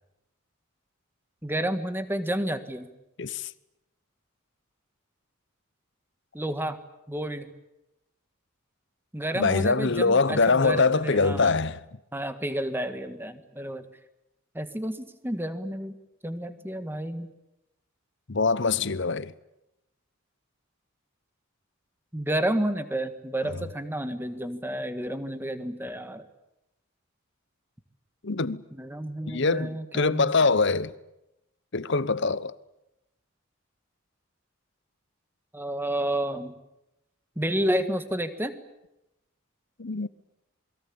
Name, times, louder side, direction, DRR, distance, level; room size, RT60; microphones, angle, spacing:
voice 1, 1.4-2.9 6.3-6.8 7.1-7.5 9.1-11.5 12.1-13.9 14.5-16.0 16.2-17.3 22.1-26.2 28.7-30.3 35.5-36.6 37.4-38.5, right 1 dB, 10° right, 1.8 m, -30 dB
voice 2, 3.2-3.5 9.3-11.8 18.3-19.3 28.2-28.6 29.3-30.9 31.7-32.5 39.8-40.1, left 4 dB, 55° left, 1.0 m, -23 dB
28.5 x 22.0 x 8.8 m
head